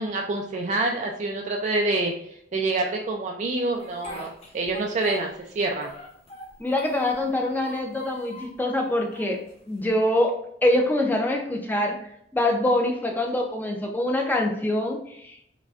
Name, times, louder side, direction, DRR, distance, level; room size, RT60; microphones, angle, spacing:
voice 1, 0.0-2.1 2.5-5.9, right 2 dB, 40° right, 1 dB, 0.4 m, -27 dB
Speech, 3.8-5.5 5.8-7.2 7.6-8.6 9.1-9.9, equal, 35° left, 1.0 m, -42 dB
voice 2, 6.6-9.4 9.7-12.0 12.3-15.3, left 1 dB, 10° left, 2 dB, 0.5 m, -24 dB
5.0 x 2.2 x 2.4 m, 0.72 s
head